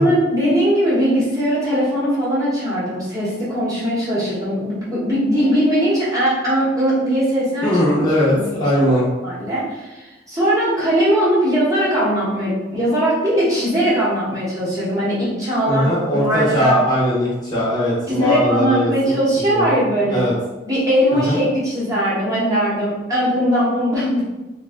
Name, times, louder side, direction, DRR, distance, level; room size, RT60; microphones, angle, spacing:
voice 1, 0.0-7.7 8.3-8.6 9.2-15.8 16.1-16.8 18.1-20.2 20.7-24.2, equal, 20° right, -9 dB, 1.1 m, -20 dB
voice 2, 7.6-9.1 15.7-19.8 20.1-20.3 21.1-21.4, equal, 25° left, -8 dB, 1.0 m, -19 dB
3.2 x 2.3 x 3.5 m, 1.1 s
head